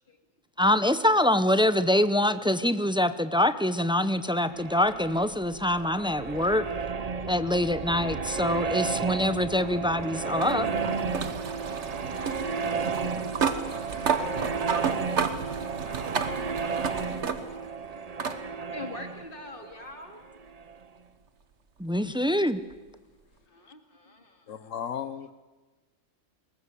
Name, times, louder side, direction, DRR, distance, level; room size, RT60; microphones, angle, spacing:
voice 1, 0.6-6.7 7.3-10.7 21.8-22.6, left 1 dB, 5° right, 12 dB, 0.4 m, -25 dB
sound 1, 4.2-20.8, right 5 dB, 35° right, 0.7 m, -33 dB
voice 2, 7.5-7.8 11.5-11.9 13.0-17.3 18.6-20.2 23.5-24.7, left 2 dB, 45° left, 5 dB, 2.4 m, -47 dB
sound 2, 8.8-17.7 18.2-18.4 19.7-19.8 22.7-22.8, right 6 dB, 65° right, 1.5 m, -32 dB
voice 3, 24.5-25.3, left 8 dB, 80° left, 12 dB, 1.2 m, -35 dB
21.5 x 18.5 x 8.4 m, 1.3 s
omnidirectional pair, 1.3 m